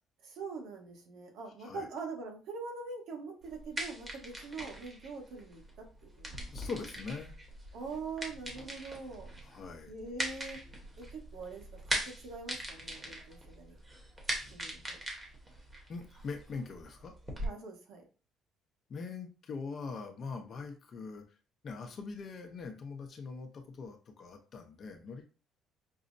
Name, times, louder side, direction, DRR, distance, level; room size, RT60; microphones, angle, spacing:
voice 1, 0.2-6.4 7.7-9.3 9.9-10.6 11.0-13.8 14.5-15.0 17.4-18.0, right 4 dB, 75° right, 2 dB, 1.1 m, -43 dB
sound 1, 3.4-17.5, right 1 dB, 20° right, 1.0 m, -41 dB
voice 2, 6.5-7.3 9.4-9.9 15.9-17.1 18.9-21.2 21.6-25.3, left 4 dB, 40° left, 5 dB, 0.7 m, -42 dB
5.4 x 2.0 x 2.6 m, 0.35 s
cardioid pair, 135°, 0 cm